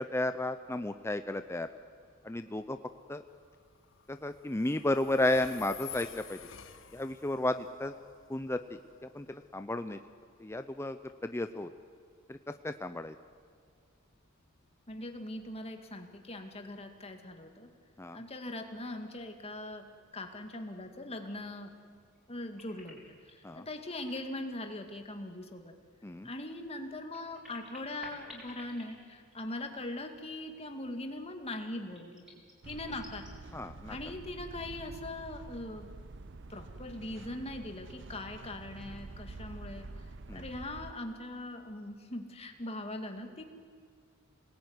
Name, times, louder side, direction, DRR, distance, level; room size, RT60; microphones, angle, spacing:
voice 1, 0.0-1.7 2.2-2.8 3.1-3.2 4.1-6.4 6.9-7.9 8.3-8.8 9.1-10.0 10.4-11.7 12.3-13.1 18.0-18.2 23.4-23.7 26.0-26.3 33.5-34.0 40.3-40.5, left 1 dB, 15° left, 9 dB, 0.6 m, -33 dB
Train, 1.0-15.7, left 10 dB, 65° left, 1.4 m, -53 dB
voice 2, 14.9-17.7 18.1-19.9 20.1-21.7 22.3-23.0 23.5-25.7 26.2-32.2 32.6-33.3 33.9-36.0 36.5-39.9 40.3-43.4, left 1 dB, 30° left, 5 dB, 2.2 m, -41 dB
sound 1, 22.1-23.4 23.9-25.0 25.3-25.4 26.8-29.8 30.1-30.2 31.9-33.3, left 1 dB, 5° right, 5.9 m, -53 dB
sound 2, 32.6-40.9, right 3 dB, 60° right, 0.8 m, -47 dB
27.0 x 19.5 x 9.6 m, 2.1 s
head